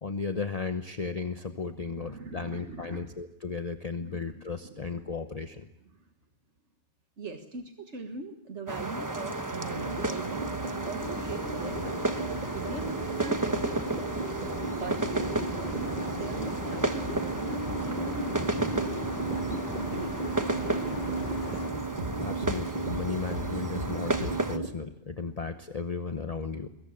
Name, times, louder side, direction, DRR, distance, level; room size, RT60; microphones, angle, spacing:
voice 1, 0.0-5.7 22.2-26.7, left 4 dB, 35° left, 8 dB, 1.0 m, -35 dB
voice 2, 1.8-3.1 4.0-5.1 5.9-6.1 7.2-12.0 12.5-13.8 14.8-21.2, right 3 dB, 75° right, 5 dB, 1.9 m, -41 dB
sound 1, 8.7-24.6, right 2 dB, 15° right, 1.0 m, -33 dB
sound 2, 9.7-24.7, right 4 dB, 40° right, 2.1 m, -36 dB
sound 3, 11.0-21.7, left 3 dB, 60° left, 2.1 m, -39 dB
22.5 x 22.0 x 8.7 m, 0.83 s
omnidirectional pair, 1.2 m